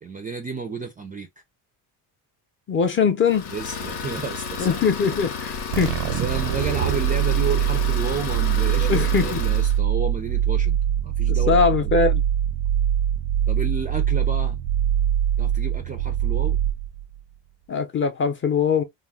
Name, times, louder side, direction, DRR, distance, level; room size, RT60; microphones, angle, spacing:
voice 1, 0.0-1.3 3.5-4.8 6.1-10.8 11.0-12.1 13.5-14.6 15.4-16.6, right 5 dB, 20° right, 0.3 m, -31 dB
voice 2, 2.7-3.5 4.6-5.9 8.9-9.4 11.3-12.2 17.7-18.8, left 6 dB, 30° left, 0.6 m, -21 dB
Idling, 3.3-9.8, left 5 dB, 90° left, 0.9 m, -32 dB
sound 1, 5.7-17.2, right 10 dB, 85° right, 0.5 m, -23 dB
2.4 x 2.0 x 3.4 m
cardioid pair, 120°, 41 cm